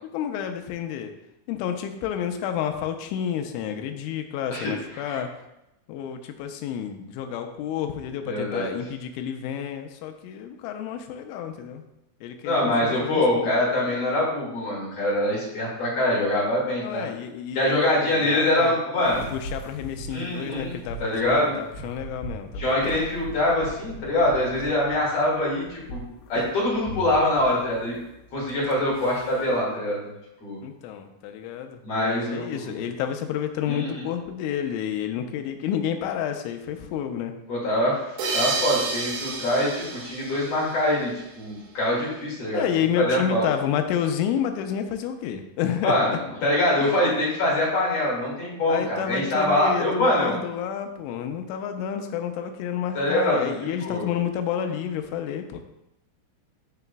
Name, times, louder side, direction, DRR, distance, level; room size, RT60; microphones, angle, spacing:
voice 1, 0.1-1.1 1.5-5.3 5.9-11.8 12.2-13.5 16.8-18.7 19.3-23.1 30.6-37.3 42.5-46.2 46.8-47.0 48.7-55.6, left 9 dB, 90° left, 6 dB, 3.1 m, -30 dB
voice 2, 4.5-5.2 8.2-8.7 12.4-17.1 17.5-19.3 20.1-21.5 22.6-26.0 26.3-27.9 28.3-30.1 30.4-30.6 31.8-32.7 33.7-34.1 37.5-42.6 43.0-43.5 45.8-50.4 52.9-53.5 53.8-54.0, left 1 dB, 45° left, -6 dB, 2.4 m, -24 dB
sound 1, 19.0-29.6, equal, 70° left, 2.8 m, -40 dB
sound 2, 38.2-41.5, right 4 dB, 80° right, 1.8 m, -31 dB
13.5 x 4.9 x 2.3 m, 0.89 s
omnidirectional pair, 5.4 m